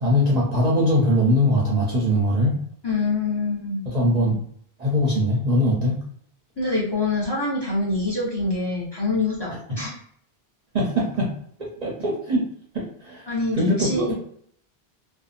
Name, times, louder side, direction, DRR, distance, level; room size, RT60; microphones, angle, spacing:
voice 1, 0.0-2.6 3.9-4.4 4.8-6.0 9.5-9.6 10.7-11.3 11.6-12.5 12.7-13.3 13.5-14.1, equal, 45° right, -4 dB, 0.6 m, -21 dB
voice 2, 2.8-3.8 6.6-9.9 13.3-14.1, left 3 dB, 25° left, -5 dB, 0.8 m, -25 dB
2.7 x 2.2 x 2.4 m, 0.64 s
omnidirectional pair, 1.1 m